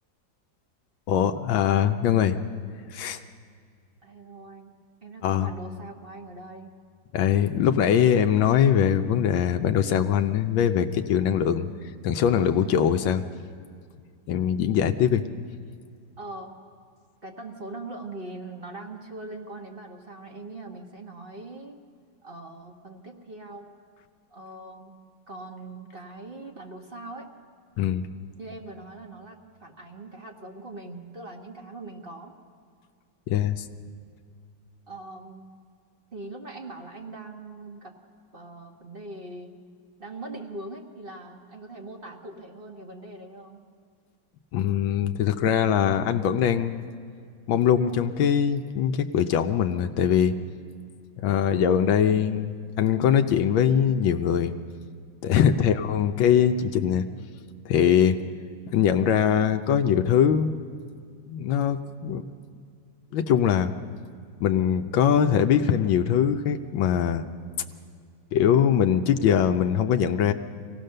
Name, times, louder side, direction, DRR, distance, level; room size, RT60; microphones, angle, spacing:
voice 1, 1.1-2.4 2.9-3.2 5.2-5.5 7.1-11.7 12.0-13.2 14.3-15.3 27.8-28.1 33.3-33.6 44.5-46.9 47.5-50.3 51.2-54.5 55.2-57.1 57.6-58.2 58.7-60.5 61.3-62.2 63.1-63.7 64.4-67.2 68.3-70.3, left 9 dB, 85° left, 7 dB, 1.5 m, -22 dB
voice 2, 4.0-6.8 12.6-12.9 16.2-16.6 17.2-21.8 22.2-23.7 24.3-24.9 25.3-27.3 28.3-32.4 34.9-35.5 36.1-38.0 38.3-39.5 40.0-43.7 55.5-55.7, right 2 dB, 35° right, 3 dB, 1.3 m, -41 dB
24.5 x 17.5 x 6.6 m, 2.2 s
omnidirectional pair, 2.1 m